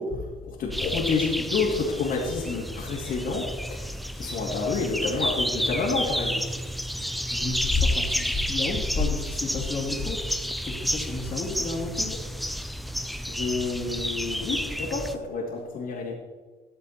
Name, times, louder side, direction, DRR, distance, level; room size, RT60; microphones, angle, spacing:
voice 1, 0.0-3.4 3.7-6.4 13.3-16.1, left 4 dB, 65° left, -6 dB, 2.6 m, -29 dB
sound 1, 0.7-15.2, equal, ahead, 0.5 m, -31 dB
voice 2, 7.3-10.2 10.6-12.2, left 3 dB, 35° left, 0 dB, 2.7 m, -29 dB
14.0 x 7.5 x 4.3 m, 1.3 s
cardioid pair, 110°, 17 cm